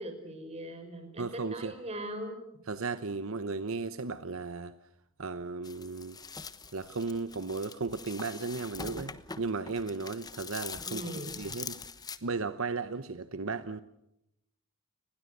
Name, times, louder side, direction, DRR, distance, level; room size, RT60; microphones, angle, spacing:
voice 1, 0.0-2.4 10.9-11.3, right 1 dB, 30° right, 5.3 m, -40 dB
voice 2, 1.2-1.7 2.7-4.7 5.2-6.2 6.7-11.8 12.2-13.8, right 4 dB, 65° right, 0.9 m, -35 dB
sound 1, 5.6-12.2, left 5 dB, 20° left, 1.1 m, -43 dB
30.0 x 21.0 x 6.7 m
head